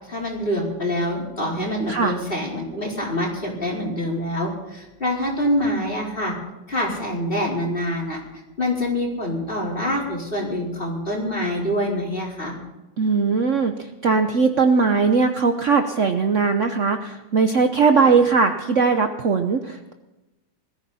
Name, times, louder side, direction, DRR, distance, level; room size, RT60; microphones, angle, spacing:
voice 1, 0.1-6.4 6.7-8.2 8.6-12.6 17.9-18.1, left 1 dB, 30° left, -2 dB, 4.5 m, -25 dB
voice 2, 13.0-19.9, right 5 dB, 50° right, 6 dB, 1.1 m, -19 dB
21.0 x 14.5 x 4.2 m, 1.0 s
omnidirectional pair, 1.9 m